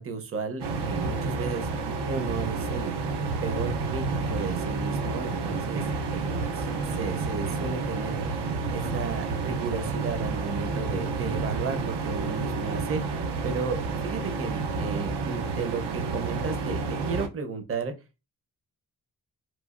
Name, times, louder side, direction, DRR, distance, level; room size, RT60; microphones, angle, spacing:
voice 1, 0.0-1.7 2.1-3.0 3.4-4.0 4.3-5.8 6.2-8.2 8.7-13.1 13.4-17.9, right 5 dB, 35° right, 7 dB, 0.6 m, -33 dB
sound 1, 0.6-17.3, right 4 dB, 80° right, 0.6 m, -30 dB
3.1 x 2.4 x 2.4 m, 0.27 s
cardioid pair, 85°, 40 cm